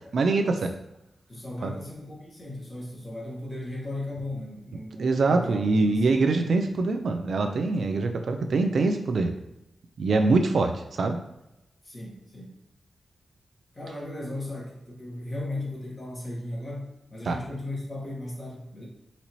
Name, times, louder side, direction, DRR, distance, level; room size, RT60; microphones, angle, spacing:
voice 1, 0.1-0.7 1.6-1.7 5.0-9.3 10.0-11.2 17.3-17.4, right 3 dB, 60° right, 6 dB, 0.4 m, -24 dB
voice 2, 1.3-6.2 7.7-7.9 8.1-8.3 11.8-12.5 13.7-18.8, left 1 dB, 25° left, -5 dB, 1.6 m, -36 dB
4.1 x 4.0 x 3.0 m, 0.87 s
wide cardioid pair, 150°, 0 cm